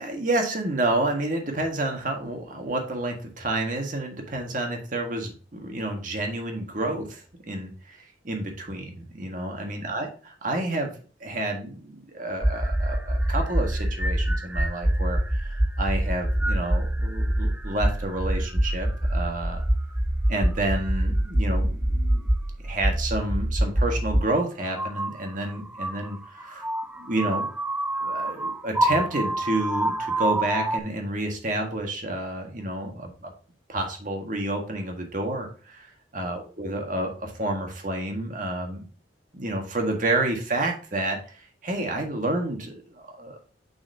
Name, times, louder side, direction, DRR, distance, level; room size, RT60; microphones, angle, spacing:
voice 1, 0.0-10.1 10.4-10.9 11.2-19.6 20.3-22.3 22.6-26.7 27.0-27.5 28.0-33.3 33.7-38.8 39.3-43.4, right 1 dB, 45° right, 2 dB, 1.7 m, -29 dB
sound 1, 12.4-24.3 24.7-30.8, right 1 dB, 10° right, 0.4 m, -25 dB
6.7 x 5.7 x 2.8 m, 0.39 s
head